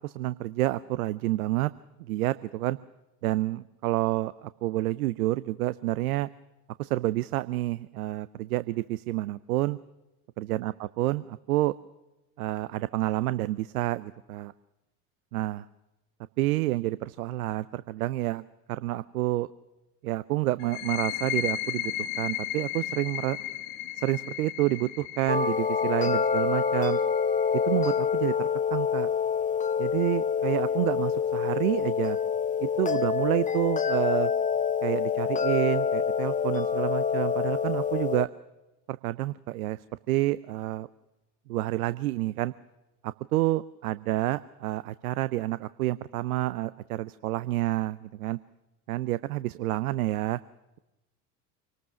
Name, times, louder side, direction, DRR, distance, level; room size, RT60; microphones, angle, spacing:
voice 1, 0.0-1.7 2.1-2.8 3.2-6.3 6.8-9.8 10.4-11.7 12.4-14.5 15.3-15.6 16.4-18.4 18.7-19.5 20.0-23.4 24.0-27.0 27.6-29.1 29.8-32.2 32.6-34.3 34.8-38.3 38.9-39.8 40.1-40.9 41.5-42.5 43.0-48.4 48.9-50.4, right 17 dB, 65° right, 17 dB, 0.7 m, -29 dB
sound 1, 20.6-28.0, left 12 dB, 65° left, 1.9 m, -35 dB
sound 2, 25.3-38.3, left 6 dB, 15° left, 0.9 m, -26 dB
26.0 x 19.0 x 6.1 m, 1.0 s
figure-of-eight pair, 70°, 46 cm